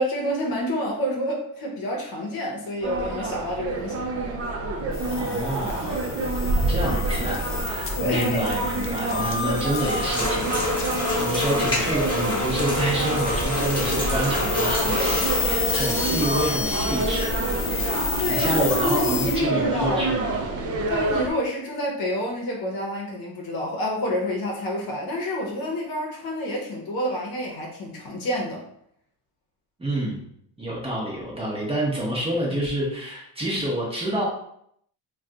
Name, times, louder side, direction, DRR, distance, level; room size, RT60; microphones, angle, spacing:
voice 1, 0.0-4.1 7.9-8.5 9.3-9.4 17.7-20.1 20.9-28.6, equal, 55° left, -1 dB, 0.8 m, -28 dB
sound 1, 2.8-21.3, right 2 dB, 40° right, 0.4 m, -27 dB
sound 2, 4.9-19.4, left 5 dB, 35° left, 0.4 m, -31 dB
voice 2, 5.1-6.0 6.7-10.9 11.2-17.4 17.7-17.9 18.3-20.4 29.8-30.2 30.6-34.2, right 1 dB, 15° right, -4 dB, 0.8 m, -28 dB
sound 3, 9.8-15.5, left 1 dB, 10° left, 1.1 m, -27 dB
2.3 x 2.3 x 3.8 m, 0.71 s
cardioid pair, 130°, 42 cm